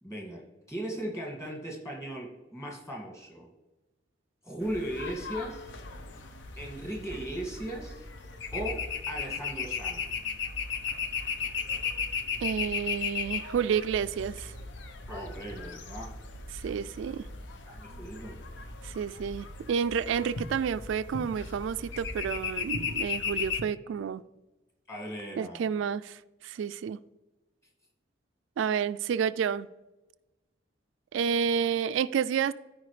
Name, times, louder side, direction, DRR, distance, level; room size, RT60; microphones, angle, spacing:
voice 1, 0.0-3.5 4.4-5.7 6.6-8.1 8.5-10.0 15.1-16.1 16.7-16.8 17.6-18.4 24.9-25.7, right 1 dB, 15° left, 2.0 m, -38 dB
sound 1, 4.6-23.6, left 5 dB, 75° left, 0.8 m, -36 dB
voice 2, 12.4-14.5 16.5-17.3 18.8-24.2 25.4-27.0 28.6-29.7 31.1-32.5, right 7 dB, 85° right, 0.3 m, -30 dB
14.0 x 4.9 x 3.2 m
head